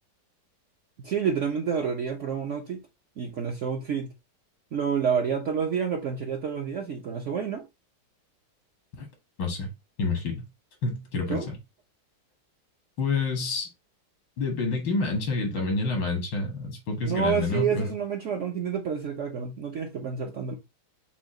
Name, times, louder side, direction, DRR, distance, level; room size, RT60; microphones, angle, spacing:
voice 1, 1.0-2.8 3.2-4.1 4.7-7.6 11.3-11.5 17.0-20.6, right 7 dB, 60° right, 0.8 m, -29 dB
voice 2, 9.4-9.7 10.0-10.4 10.8-11.6 13.0-13.7 14.4-17.9, left 3 dB, 85° left, 2.2 m, -28 dB
6.0 x 2.3 x 3.5 m
omnidirectional pair, 2.0 m